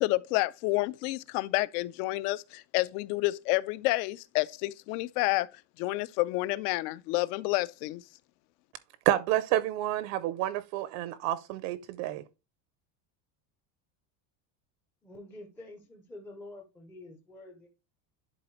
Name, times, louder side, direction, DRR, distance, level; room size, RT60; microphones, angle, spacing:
voice 1, 0.0-5.5 5.8-8.0, left 20 dB, 75° left, 0.6 m, -29 dB
voice 2, 9.1-12.2, right 13 dB, 55° right, 0.5 m, -29 dB
voice 3, 15.0-17.7, left 2 dB, 5° left, 0.4 m, -47 dB
11.0 x 4.1 x 3.0 m
cardioid pair, 175°, 47 cm